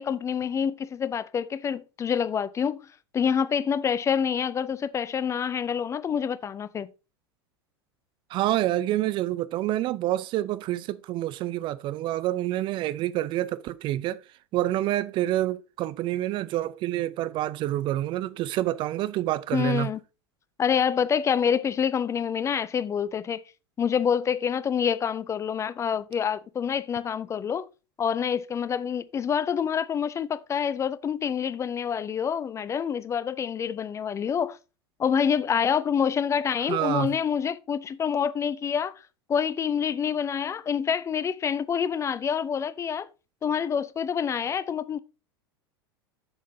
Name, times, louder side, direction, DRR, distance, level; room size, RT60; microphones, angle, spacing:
voice 1, 0.0-2.8 3.1-6.9 19.5-20.0 20.6-23.4 23.8-27.7 28.0-34.6 35.0-38.9 39.3-43.1 43.4-45.0, left 7 dB, 20° left, 0.5 m, -27 dB
voice 2, 8.3-14.2 14.5-19.9 36.7-37.2, right 14 dB, 35° right, 0.5 m, -27 dB
8.0 x 7.2 x 2.7 m
figure-of-eight pair, 85°, 14 cm